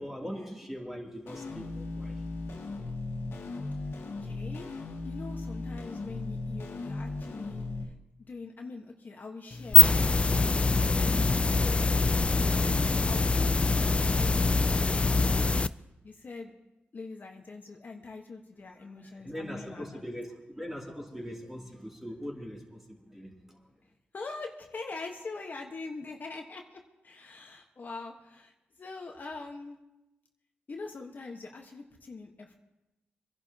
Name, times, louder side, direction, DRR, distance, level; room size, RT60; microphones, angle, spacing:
voice 1, 0.0-2.2 18.7-23.7, equal, 5° right, -2 dB, 2.9 m, -41 dB
sound 1, 1.3-7.8, left 3 dB, 75° left, 2.1 m, -37 dB
voice 2, 4.2-4.7 5.0-7.9 8.3-11.9 12.4-15.6 16.0-16.5 16.9-20.0 24.1-28.5 28.8-29.8 30.7-32.5, left 3 dB, 45° left, 2 dB, 1.3 m, -43 dB
sound 2, 9.5-15.7, left 3 dB, 30° left, 0.4 m, -24 dB
26.5 x 11.0 x 2.9 m, 0.95 s
cardioid pair, 85°, 4 cm